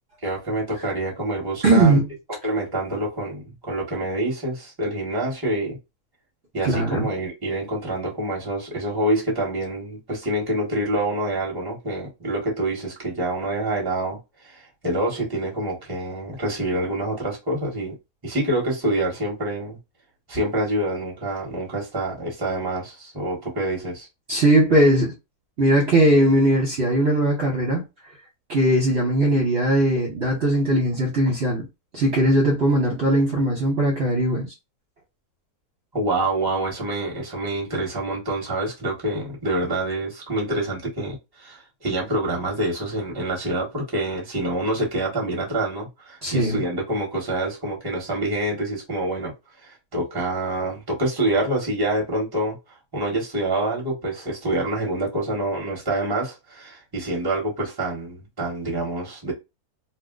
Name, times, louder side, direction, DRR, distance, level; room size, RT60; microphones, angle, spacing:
voice 1, 0.2-2.0 2.4-5.8 6.5-18.0 18.2-19.8 20.3-24.1 35.9-49.3 49.6-52.6 52.9-59.3, right 1 dB, 15° right, 1.0 m, -26 dB
voice 2, 1.6-2.1 6.6-7.1 24.3-25.1 25.6-27.8 28.5-31.7 31.9-34.5 46.2-46.6, right 1 dB, 50° right, 1.0 m, -19 dB
2.5 x 2.1 x 3.7 m
omnidirectional pair, 1.6 m